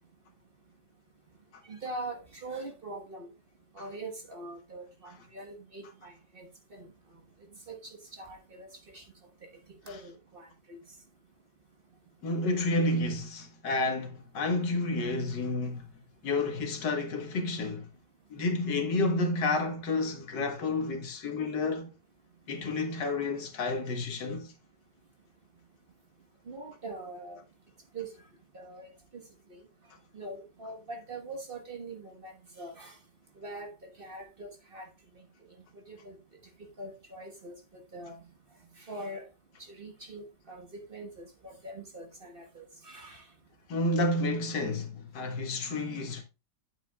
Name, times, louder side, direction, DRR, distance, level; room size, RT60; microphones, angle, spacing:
voice 1, 1.7-3.3 3.7-6.9 7.7-9.0 9.9-10.8 26.5-27.4 27.9-28.1 28.5-29.2 29.5-29.6 30.1-32.9 33.4-33.7 34.0-34.9 35.9-36.2 36.8-37.5 37.9-38.2 38.8-39.2 39.7-43.2, right 2 dB, 35° right, 1.3 m, -43 dB
voice 2, 12.2-15.9 16.2-17.9 18.3-21.9 22.5-24.5 43.7-46.2, left 2 dB, 90° left, 1.9 m, -30 dB
9.1 x 7.9 x 2.3 m
omnidirectional pair, 1.8 m